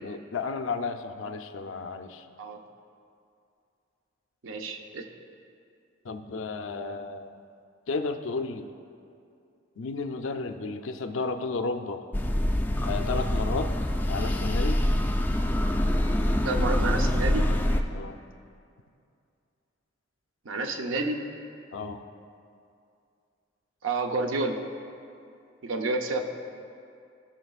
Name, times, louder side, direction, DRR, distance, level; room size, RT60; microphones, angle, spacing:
voice 1, 0.0-2.3 6.0-7.4 7.9-8.7 9.8-12.1 12.8-13.7 14.1-14.8 17.9-18.2 21.7-22.0, left 4 dB, 85° left, 8 dB, 0.5 m, -33 dB
voice 2, 4.4-5.1 16.4-17.5 20.5-21.2 23.8-24.5 25.6-26.2, right 3 dB, 80° right, 5 dB, 0.7 m, -29 dB
sound 1, 12.1-17.8, left 1 dB, 10° left, 0.3 m, -25 dB
17.0 x 6.3 x 2.4 m, 2.5 s
head